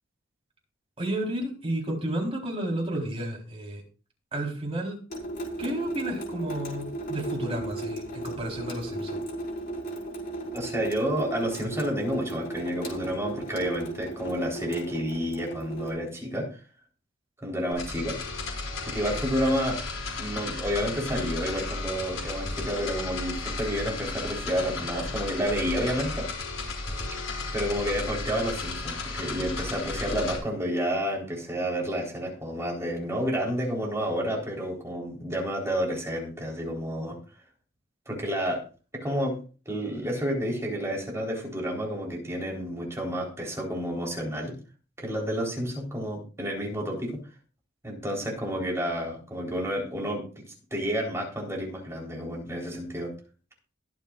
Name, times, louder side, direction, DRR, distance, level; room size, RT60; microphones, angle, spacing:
voice 1, 1.0-3.8 4.3-5.0 5.6-9.2, right 1 dB, 30° right, -1 dB, 4.1 m, -32 dB
Water tap faucet / Sink (filling or washing) / Drip, 5.1-15.9, right 2 dB, 50° left, 5.0 m, -36 dB
voice 2, 10.5-16.5 17.4-18.1 18.8-19.8 20.2-26.3 27.5-37.2 38.1-38.6 38.9-39.4 39.7-44.5 45.0-47.2 47.8-50.4 50.7-53.1, equal, 15° right, -2 dB, 4.0 m, -30 dB
sound 1, 17.7-30.4, left 3 dB, 85° left, 5.6 m, -34 dB
22.5 x 7.5 x 2.5 m, 0.36 s
head